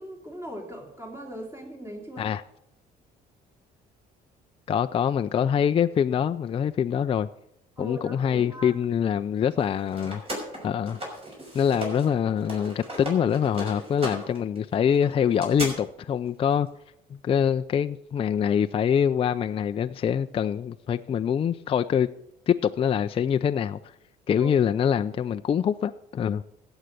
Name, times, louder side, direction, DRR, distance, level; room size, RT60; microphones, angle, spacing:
voice 1, 0.0-2.3 7.8-8.7 11.7-11.9 24.4-24.5, equal, 15° right, 3.0 m, -39 dB
voice 2, 4.7-7.3 7.8-10.2 10.6-11.0 11.5-16.7 17.1-22.1 22.5-23.9 24.3-26.4, left 8 dB, 35° left, 0.4 m, -24 dB
sound 1, 9.5-12.1 12.4-15.7, right 1 dB, 35° right, 6.0 m, -36 dB
14.5 x 8.1 x 6.6 m
cardioid pair, 110°, 17 cm